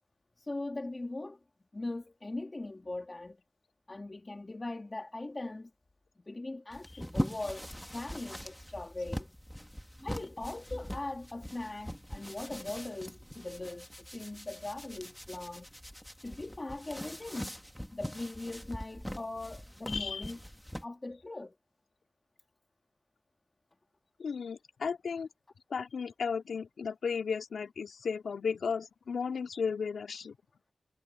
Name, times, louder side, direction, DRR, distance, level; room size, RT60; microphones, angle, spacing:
voice 1, 0.4-1.4 1.7-3.4 3.9-5.7 6.3-9.3 10.0-15.7 16.2-17.6 17.9-20.4 20.8-21.5, left 2 dB, 25° left, 1.9 m, -40 dB
sound 1, 6.7-20.9, equal, 5° left, 1.5 m, -42 dB
voice 2, 19.9-20.3 24.2-25.3 25.7-30.4, left 6 dB, 75° left, 2.8 m, -34 dB
wide cardioid pair, 150°, 0 cm